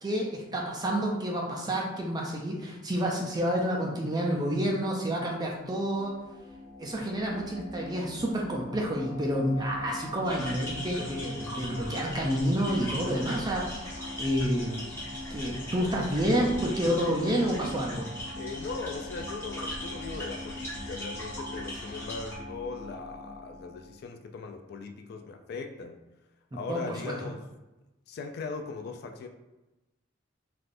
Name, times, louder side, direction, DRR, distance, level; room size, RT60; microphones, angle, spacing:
voice 1, 0.0-6.1 6.8-15.0 15.3-18.1 26.7-27.1, equal, 20° right, -1 dB, 0.4 m, -29 dB
sound 1, 5.2-24.1, left 1 dB, 80° right, 0.7 m, -43 dB
sound 2, 10.2-22.4, left 1 dB, 15° left, 0.9 m, -40 dB
voice 2, 18.4-26.0 26.5-27.5 28.1-29.3, left 4 dB, 55° left, 6 dB, 0.3 m, -39 dB
3.3 x 2.4 x 2.5 m, 1.0 s
head